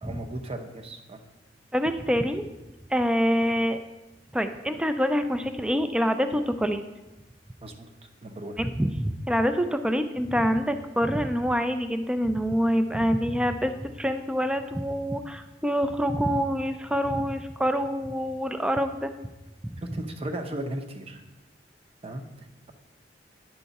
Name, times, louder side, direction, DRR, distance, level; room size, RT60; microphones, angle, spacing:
voice 1, 0.0-1.2 7.6-7.9 8.2-8.6 19.8-21.2 22.0-22.7, right 1 dB, 35° right, 5 dB, 0.7 m, -36 dB
voice 2, 1.7-2.4 2.9-3.8 4.3-6.8 8.6-19.1 19.6-19.7, equal, 5° right, 8 dB, 0.3 m, -26 dB
9.9 x 4.7 x 4.1 m, 1.0 s
head